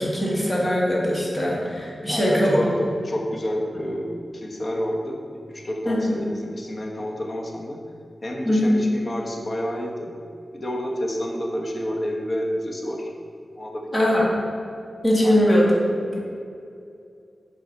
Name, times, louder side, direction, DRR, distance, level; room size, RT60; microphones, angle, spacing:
voice 1, 0.0-2.6 5.9-6.2 8.4-8.7 13.9-14.3 15.0-16.2, equal, 20° left, -5 dB, 1.8 m, -21 dB
voice 2, 2.1-5.2 5.5-7.8 8.2-10.1 10.5-13.1 13.5-13.8 15.2-15.5, equal, 35° left, -1 dB, 1.1 m, -29 dB
8.5 x 4.6 x 4.1 m, 2.5 s
wide cardioid pair, 125°, 0 cm